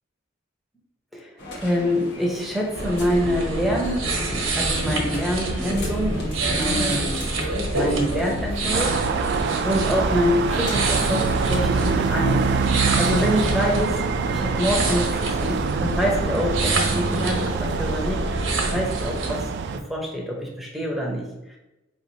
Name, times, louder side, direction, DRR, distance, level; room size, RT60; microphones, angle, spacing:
sound 1, 1.4-12.1, left 1 dB, 60° left, 1.1 m, -39 dB
voice 1, 1.6-7.2 7.7-9.1 9.6-12.6 12.9-14.0 14.3-21.6, equal, ahead, -1 dB, 0.8 m, -26 dB
sound 2, 2.7-19.4, right 2 dB, 90° right, 0.9 m, -27 dB
sound 3, 8.7-19.8, right 5 dB, 60° right, 0.3 m, -25 dB
4.8 x 3.2 x 2.7 m, 0.96 s
head